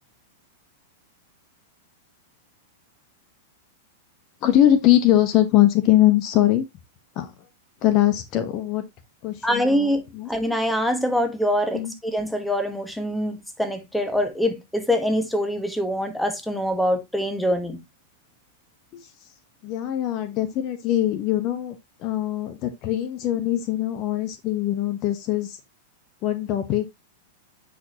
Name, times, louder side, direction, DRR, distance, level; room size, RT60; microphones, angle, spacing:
voice 1, 4.4-6.7 7.2-7.3 7.8-8.8 9.2-10.3 11.7-11.9 18.9-19.1 19.6-25.6 26.2-26.9, left 13 dB, 40° left, 1.1 m, -22 dB
voice 2, 9.4-10.0 10.3-17.8, equal, ahead, 1.6 m, -24 dB
8.7 x 5.2 x 2.9 m
figure-of-eight pair, 100°, 0 cm